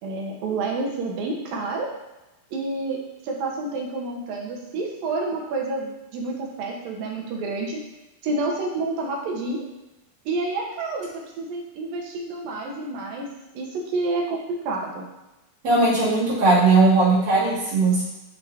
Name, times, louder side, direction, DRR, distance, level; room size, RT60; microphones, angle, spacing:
voice 1, 0.0-1.9 2.5-7.8 8.2-9.7 10.3-13.3 13.5-15.1, right 3 dB, 75° right, -1 dB, 2.7 m, -29 dB
voice 2, 15.6-18.0, right 3 dB, 55° right, -10 dB, 3.8 m, -18 dB
11.5 x 3.9 x 2.8 m, 1.0 s
omnidirectional pair, 4.1 m